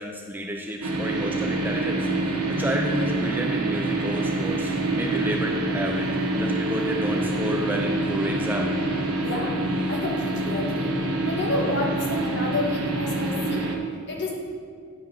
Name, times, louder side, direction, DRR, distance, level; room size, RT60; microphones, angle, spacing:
voice 1, 0.0-8.7, equal, 10° right, 1 dB, 0.4 m, -31 dB
sound 1, 0.8-13.8, right 2 dB, 90° right, 1.2 m, -26 dB
voice 2, 9.9-10.9 11.3-13.6 14.1-14.3, left 2 dB, 50° left, -2 dB, 1.7 m, -29 dB
10.5 x 5.2 x 6.0 m, 2.2 s
head